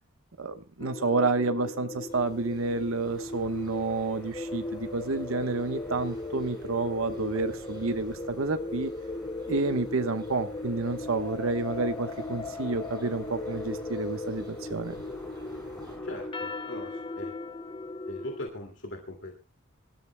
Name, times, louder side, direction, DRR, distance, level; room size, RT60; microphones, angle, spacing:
voice 1, 0.4-8.9 9.5-14.9, right 3 dB, 85° right, 9 dB, 1.1 m, -29 dB
sound 1, 0.8-18.5, left 2 dB, 25° left, 0.6 m, -37 dB
sound 2, 2.1-16.0, equal, 20° right, 5.8 m, -54 dB
Car passing by / Traffic noise roadway noise, 3.0-16.3, equal, 5° left, 5.8 m, -52 dB
voice 2, 16.0-17.3 18.1-19.3, left 1 dB, 65° left, 2 dB, 2.3 m, -40 dB
26.5 x 13.5 x 2.2 m, 0.30 s
head